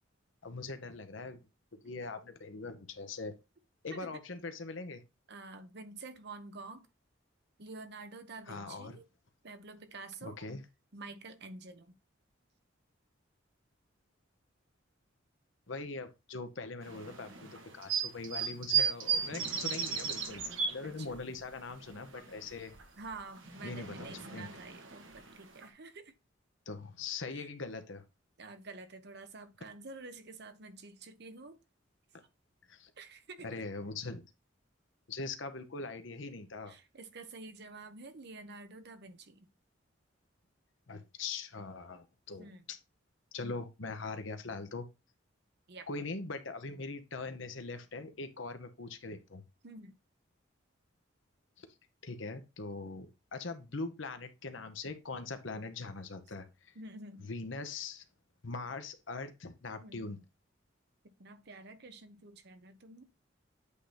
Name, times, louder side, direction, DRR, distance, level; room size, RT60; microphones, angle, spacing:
voice 1, 0.4-1.5 1.8-3.3 3.8-5.0 8.5-9.0 10.2-10.6 15.7-22.7 23.6-24.5 26.7-28.0 32.7-32.9 33.4-34.2 35.1-36.7 40.9-42.8 43.3-44.9 45.9-49.4 51.6-51.7 52.0-56.7 57.3-58.0 58.4-60.2, left 3 dB, 75° left, 1.0 m, -41 dB
voice 2, 3.9-4.2 5.3-6.9 7.6-9.1 9.4-10.4 10.9-11.9 20.8-21.1 23.0-26.1 27.3-27.5 28.4-31.6 33.0-33.6 36.7-39.5 42.4-42.6 45.7-45.9 49.6-49.9 56.7-57.3 59.8-60.2 61.0-63.0, right 3 dB, 60° right, 0.9 m, -49 dB
sound 1, 16.8-21.4 21.7-22.8 23.1-25.7, right 7 dB, 80° right, 1.4 m, -35 dB
8.4 x 2.8 x 5.0 m
head